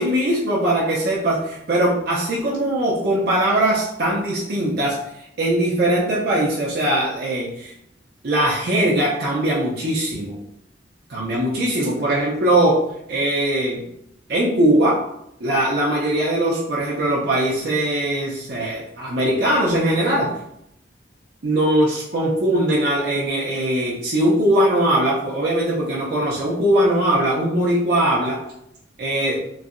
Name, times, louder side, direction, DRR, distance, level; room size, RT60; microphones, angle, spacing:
voice 1, 0.0-5.0 5.4-7.7 8.2-10.4 11.1-12.8 13.1-13.8 14.3-15.0 15.4-20.3 21.4-28.4 29.0-29.4, right 1 dB, 60° right, -6 dB, 0.6 m, -20 dB
3.1 x 2.7 x 2.5 m, 0.78 s
head